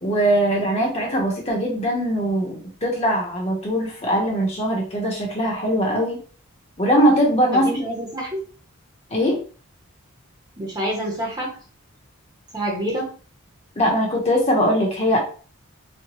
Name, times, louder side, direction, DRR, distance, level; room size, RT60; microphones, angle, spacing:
voice 1, 0.0-6.2 6.8-7.8 9.1-9.4 13.8-15.2, equal, 30° left, -2 dB, 1.0 m, -21 dB
voice 2, 7.5-8.4 10.6-11.6 12.5-13.1, right 1 dB, 20° right, -2 dB, 0.9 m, -27 dB
4.5 x 2.3 x 3.0 m, 0.40 s
head